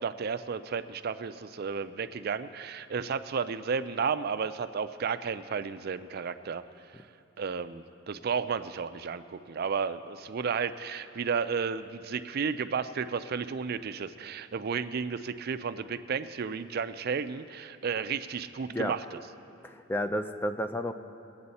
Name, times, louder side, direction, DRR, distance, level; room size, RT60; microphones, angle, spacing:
voice 1, 0.0-6.6 7.4-19.2, right 6 dB, 50° right, 12 dB, 0.4 m, -33 dB
voice 2, 19.6-20.9, equal, 10° left, 8 dB, 0.4 m, -31 dB
21.0 x 8.7 x 4.2 m, 2.6 s
head